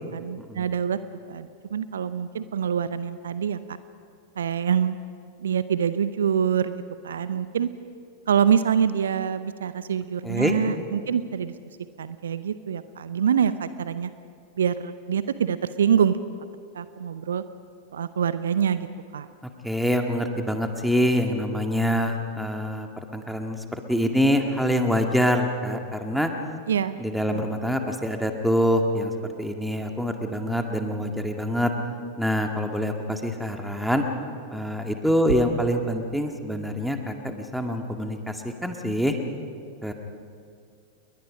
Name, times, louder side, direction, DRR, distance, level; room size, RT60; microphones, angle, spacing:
voice 1, 0.1-1.0 1.3-3.8 4.4-5.0 5.4-7.7 8.3-11.5 12.0-14.1 14.6-16.2 16.7-17.4 17.9-18.9 19.1-19.3 26.7-27.0 27.3-27.5, right 8 dB, 65° right, 14 dB, 0.7 m, -25 dB
voice 2, 19.6-22.9 23.1-26.3 27.0-31.7 32.2-34.0 34.5-39.2 39.8-39.9, equal, ahead, 4 dB, 2.1 m, -25 dB
29.0 x 21.5 x 5.2 m, 2.3 s
figure-of-eight pair, 90°, 0 cm